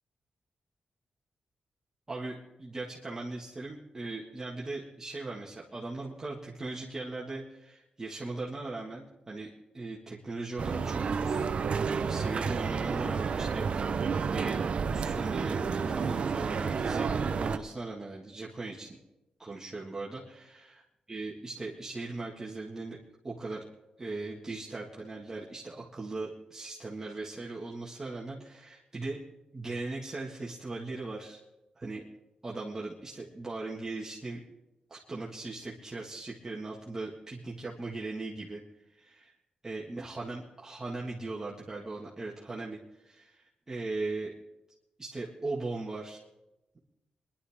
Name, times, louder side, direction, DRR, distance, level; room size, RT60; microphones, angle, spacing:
voice 1, 2.1-11.5 12.1-14.6 14.9-17.1 17.4-19.0 19.4-23.0 23.2-23.7 24.0-29.2 29.5-31.4 31.8-32.0 32.4-34.4 34.9-38.6 38.9-39.3 39.6-44.3 45.0-46.2, right 3 dB, 25° right, -4 dB, 1.9 m, -39 dB
sound 1, 10.6-17.6, right 5 dB, 55° right, 0.8 m, -30 dB
23.0 x 11.5 x 3.7 m, 0.96 s
wide cardioid pair, 115°, 2 cm